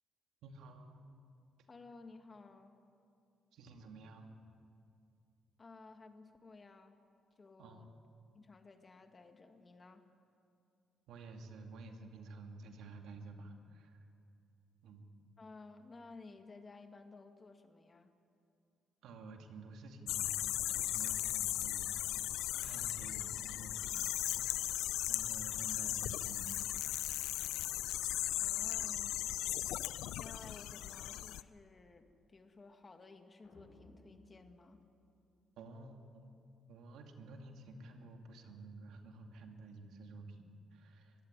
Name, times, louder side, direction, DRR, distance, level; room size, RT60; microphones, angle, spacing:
voice 1, 0.4-1.1 3.5-4.4 7.6-7.9 11.1-14.0 14.8-15.0 19.0-24.7 25.1-26.8 35.6-36.3 36.7-41.1, right 3 dB, 80° right, 4 dB, 2.4 m, -52 dB
voice 2, 1.7-2.8 5.6-7.0 7.3-7.9 8.3-10.1 15.4-18.1 28.4-29.2 30.2-34.8, left 3 dB, 30° left, 6 dB, 2.0 m, -55 dB
sound 1, 20.1-31.4, left 14 dB, 90° left, 0.5 m, -37 dB
sound 2, 33.4-35.9, left 2 dB, 60° left, 7.3 m, -63 dB
22.0 x 16.0 x 9.8 m, 2.5 s
cardioid pair, 90°, 0 cm